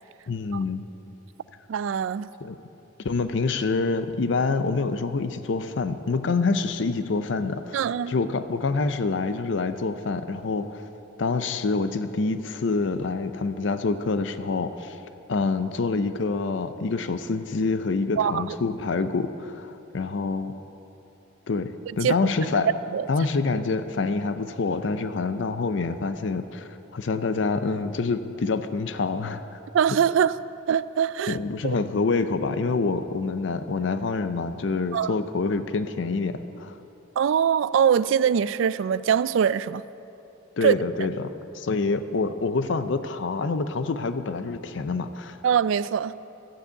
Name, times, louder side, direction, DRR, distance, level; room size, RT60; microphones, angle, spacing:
voice 1, 0.3-0.8 2.4-2.6 3.0-10.8 11.2-15.0 15.3-20.6 21.5-22.7 23.1-29.4 31.3-36.7 40.6-45.4, left 4 dB, 65° left, 10 dB, 0.5 m, -26 dB
voice 2, 1.7-2.3 7.7-8.1 18.2-18.4 22.0-22.1 22.9-23.1 29.7-30.4 30.7-31.4 31.6-31.8 34.9-35.1 37.2-39.8 40.6-40.7 45.4-46.1, right 8 dB, 75° right, 17 dB, 0.3 m, -22 dB
12.0 x 7.1 x 8.1 m, 2.9 s
head